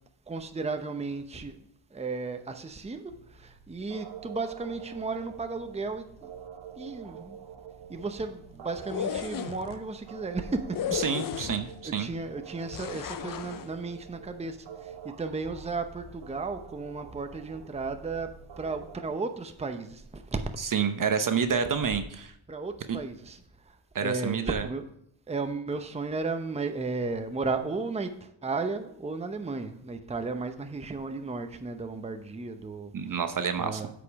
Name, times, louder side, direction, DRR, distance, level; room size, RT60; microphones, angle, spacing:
voice 1, 0.3-1.6 1.9-6.3 6.8-7.4 7.9-11.0 11.6-18.3 18.6-20.6 21.5-21.6 22.5-24.8 25.3-33.2 33.6-33.9, right 3 dB, 15° right, 0.8 m, -34 dB
sound 1, 3.1-19.0, right 7 dB, 65° right, 1.2 m, -46 dB
sound 2, 8.8-9.7 10.7-11.8 12.7-13.7, left 9 dB, 45° left, 0.6 m, -34 dB
voice 2, 10.9-12.1 20.7-22.3 22.9-23.0 23.9-24.7 32.9-33.8, right 6 dB, 45° right, 0.8 m, -28 dB
8.2 x 5.3 x 7.0 m
cardioid pair, 95°, 46 cm